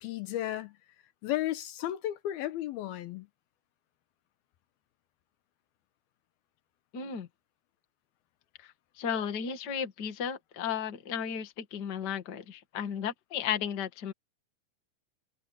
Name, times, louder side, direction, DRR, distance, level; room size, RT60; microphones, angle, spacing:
voice 1, 0.0-0.8 1.2-3.3, left 13 dB, 75° left, 2.7 m, -34 dB
voice 2, 6.9-7.3 9.0-14.1, left 8 dB, 40° left, 1.7 m, -34 dB
omnidirectional pair, 4.6 m